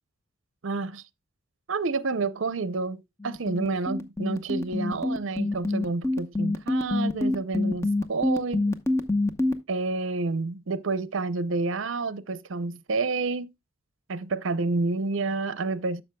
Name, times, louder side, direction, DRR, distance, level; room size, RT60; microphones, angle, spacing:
voice 1, 0.6-1.0 1.7-8.8 9.7-13.5 14.1-16.0, right 3 dB, 65° right, 0.6 m, -29 dB
sound 1, 3.2-9.5, left 2 dB, 15° left, 0.8 m, -25 dB
12.0 x 6.4 x 2.2 m
head